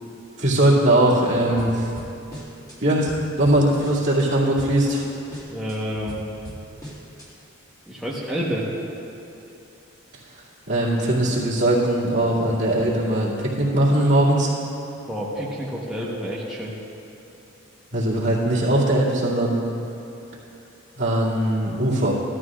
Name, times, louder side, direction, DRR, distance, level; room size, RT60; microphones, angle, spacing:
voice 1, 0.4-1.9 2.8-3.1 3.4-5.0 10.7-14.5 17.9-19.6 21.0-22.1, right 1 dB, 55° right, -8 dB, 2.6 m, -20 dB
sound 1, 1.6-2.8 3.1-4.3 4.6-5.0 5.3-7.3, equal, 20° left, 2.1 m, -39 dB
voice 2, 5.5-6.2 7.9-8.7 15.1-16.8, equal, ahead, -7 dB, 1.1 m, -29 dB
16.5 x 12.5 x 2.5 m, 2.8 s
head